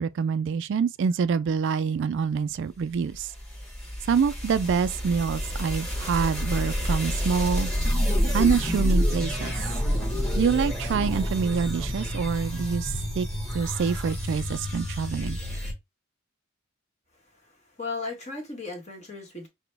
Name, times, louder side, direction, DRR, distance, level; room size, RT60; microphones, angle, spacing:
voice 1, 0.0-3.3 4.1-7.7 8.3-9.5 10.4-13.3 13.5-15.4, right 6 dB, 60° right, 0.3 m, -26 dB
sound 1, 2.9-15.7, equal, 5° left, 1.3 m, -28 dB
voice 2, 17.8-19.5, left 3 dB, 35° left, 1.5 m, -35 dB
6.0 x 2.2 x 3.3 m
head